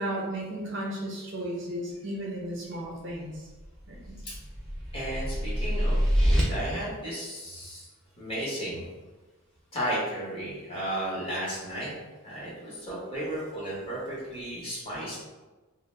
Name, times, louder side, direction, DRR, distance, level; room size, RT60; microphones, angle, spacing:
voice 1, 0.0-3.5 3.9-4.2, right 1 dB, 55° right, -3 dB, 0.7 m, -34 dB
sound 1, 3.6-6.4, equal, ahead, 0.4 m, -26 dB
voice 2, 4.9-7.8 8.2-8.8 9.7-11.9 12.2-15.2, right 1 dB, 25° left, -7 dB, 0.8 m, -34 dB
2.3 x 2.0 x 3.2 m, 1.2 s
head